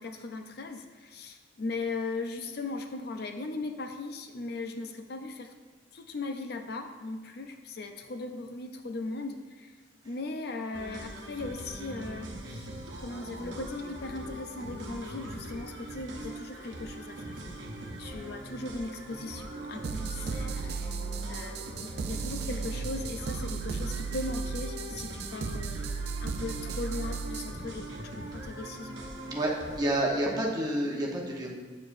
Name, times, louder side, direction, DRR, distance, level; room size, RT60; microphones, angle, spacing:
voice 1, 0.0-5.5 5.9-9.7 10.0-12.7 13.0-17.2 18.0-21.0 21.3-25.8 26.2-29.0, left 3 dB, 55° left, 5 dB, 0.5 m, -38 dB
sound 1, 10.7-29.9, right 1 dB, 80° right, 1.0 m, -42 dB
sound 2, 19.8-27.5, right 4 dB, 60° right, 0.4 m, -35 dB
voice 2, 29.2-31.5, right 1 dB, 20° right, -2 dB, 0.9 m, -29 dB
8.2 x 6.7 x 2.6 m, 1.4 s
head